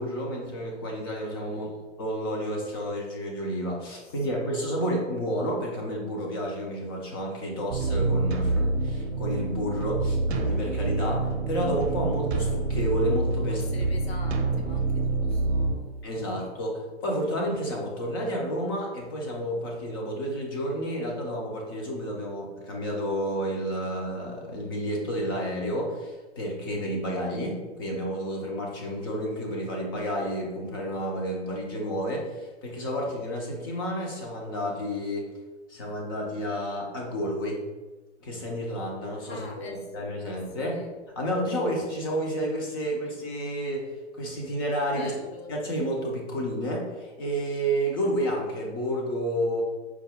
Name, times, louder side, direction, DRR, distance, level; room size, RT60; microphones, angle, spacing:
voice 1, 0.0-1.7 2.0-13.6 16.0-35.3 35.7-37.6 38.2-40.8 41.2-43.9 44.1-45.1 45.5-49.6, equal, 20° left, -1 dB, 0.4 m, -30 dB
voice 2, 1.5-1.9 4.0-4.6 13.5-16.2 39.3-40.1 40.6-40.9 42.9-43.2 44.9-45.5, left 3 dB, 60° left, 3 dB, 0.9 m, -46 dB
sound 1, 7.7-15.8, right 3 dB, 65° right, 0.6 m, -27 dB
4.6 x 2.1 x 3.3 m, 1.2 s
hypercardioid pair, 130°, 35 cm